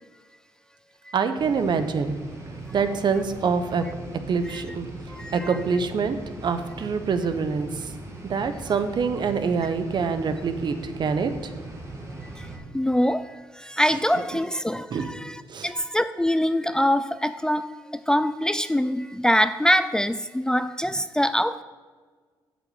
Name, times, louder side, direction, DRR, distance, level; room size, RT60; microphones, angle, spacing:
voice 1, 1.1-2.2 2.7-3.8 4.3-4.9 5.3-6.2 6.4-7.9 8.2-11.5 14.9-15.1 15.5-15.7, right 5 dB, 55° right, 9 dB, 1.0 m, -25 dB
sound 1, 1.4-12.6, right 2 dB, 35° right, 2.5 m, -40 dB
voice 2, 5.1-5.6 9.6-9.7 12.4-21.6, equal, 5° left, 12 dB, 0.4 m, -24 dB
8.3 x 6.3 x 8.1 m, 1.5 s
cardioid pair, 80°, 9 cm